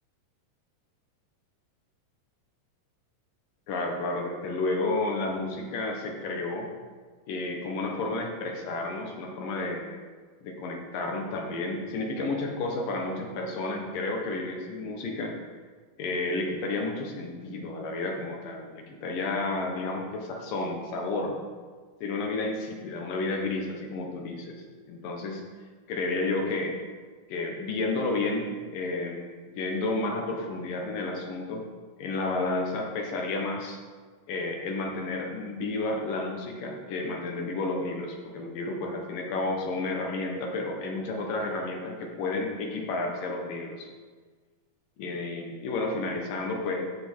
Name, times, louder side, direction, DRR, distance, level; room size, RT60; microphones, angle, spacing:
voice 1, 3.7-6.7 7.3-10.0 10.4-15.4 16.0-21.4 22.0-24.6 24.9-25.4 25.9-26.8 27.3-31.6 32.0-33.8 34.3-43.9 45.0-46.9, left 2 dB, 70° left, 1 dB, 2.8 m, -31 dB
14.5 x 6.2 x 4.6 m, 1.5 s
omnidirectional pair, 4.2 m